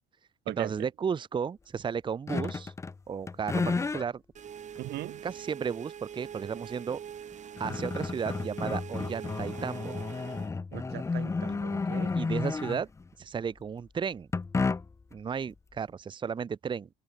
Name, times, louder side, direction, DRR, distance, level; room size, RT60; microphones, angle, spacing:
voice 1, 0.5-2.7 3.1-4.2 5.2-7.0 7.6-9.9 12.1-12.9 13.2-14.3 15.1-16.9, right 6 dB, 30° right, 0.8 m, -34 dB
sound 1, 2.3-3.0 3.3-4.1 4.8-4.9 6.9-7.0 7.3-13.1 14.3-15.1, left 4 dB, 15° left, 0.6 m, -32 dB
sound 2, 4.3-10.5, right 8 dB, 45° right, 2.1 m, -43 dB
voice 2, 4.8-5.2 10.7-12.1, right 16 dB, 75° right, 1.1 m, -39 dB
cardioid pair, 110°, 17 cm